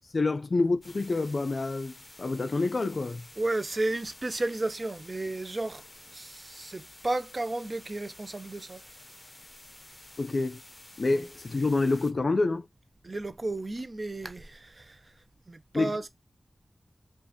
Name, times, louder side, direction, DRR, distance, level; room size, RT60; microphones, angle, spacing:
voice 1, 0.1-3.3 10.2-10.6 11.0-12.7 15.7-16.1, left 3 dB, 55° left, 0.3 m, -27 dB
sound 1, 0.8-12.1, left 1 dB, 25° left, 0.8 m, -51 dB
voice 2, 3.4-8.8 11.1-11.3 13.0-15.1 15.5-16.1, right 2 dB, 40° right, 0.5 m, -33 dB
4.9 x 2.4 x 2.6 m
wide cardioid pair, 80°, 0 cm